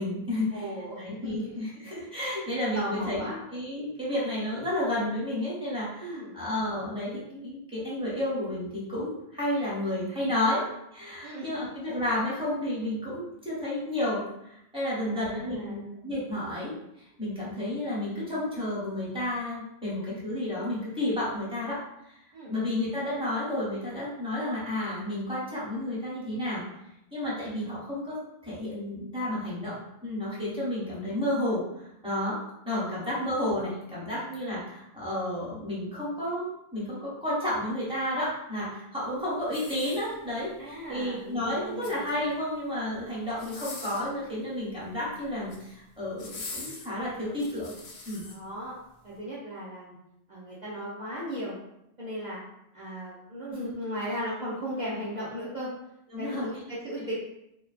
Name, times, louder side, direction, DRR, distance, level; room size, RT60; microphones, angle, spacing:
voice 1, 0.0-0.7 1.0-10.6 10.9-22.2 22.5-26.6 27.1-29.8 30.0-32.4 32.6-36.5 36.7-47.7 48.1-48.2 53.5-53.7 56.1-56.5, left 1 dB, 5° right, -9 dB, 0.9 m, -31 dB
voice 2, 0.5-1.6 2.7-3.3 6.0-6.4 11.2-11.5 14.9-15.9 22.3-22.5 40.6-42.0 48.2-48.8 49.0-50.0 50.3-51.6 52.0-52.4 52.7-55.7 56.2-57.1, equal, 50° right, -9 dB, 0.6 m, -36 dB
sound 1, 39.5-40.5 41.6-42.4 43.3-44.1 45.2-45.7 46.2-48.4 48.9-49.1, left 3 dB, 90° left, 0.9 m, -43 dB
2.6 x 2.2 x 2.4 m, 0.82 s
omnidirectional pair, 1.1 m